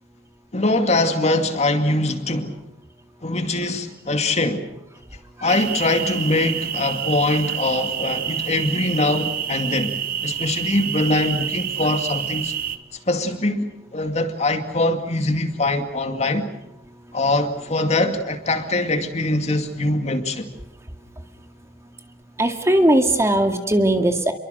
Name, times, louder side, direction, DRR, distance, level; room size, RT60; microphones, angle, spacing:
voice 1, 0.5-2.5 3.2-4.6 5.4-12.5 13.1-16.4 17.1-20.5, left 2 dB, 40° left, 2.4 m, -22 dB
sound 1, 5.5-12.8, right 9 dB, 55° right, 1.6 m, -28 dB
voice 2, 22.4-24.3, right 1 dB, 15° right, 2.2 m, -18 dB
29.5 x 23.0 x 6.7 m
head